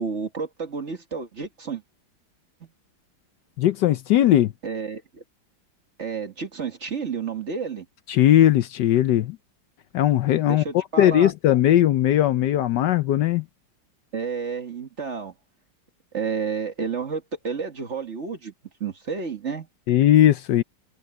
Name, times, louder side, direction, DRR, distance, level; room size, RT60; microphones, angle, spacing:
voice 1, 0.0-1.8 4.6-5.2 6.0-7.9 10.5-11.3 14.1-15.3 16.1-18.5 18.8-19.7, right 5 dB, 40° right, 1.8 m, -30 dB
voice 2, 3.6-4.5 8.1-9.4 9.9-13.4 19.9-20.6, left 12 dB, 70° left, 1.2 m, -19 dB
omnidirectional pair, 2.1 m